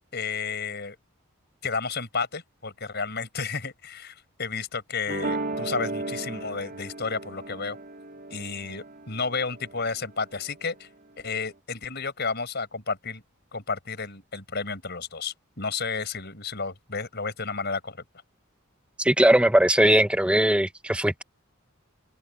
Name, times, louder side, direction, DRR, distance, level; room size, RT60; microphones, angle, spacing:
voice 1, 0.1-1.0 1.6-7.8 8.3-10.9 11.2-13.2 13.5-18.0, left 4 dB, 50° left, 5.7 m, -32 dB
sound 1, 5.1-10.1, right 2 dB, 45° right, 4.0 m, -35 dB
voice 2, 19.0-21.2, right 1 dB, 5° right, 1.0 m, -20 dB
open air
head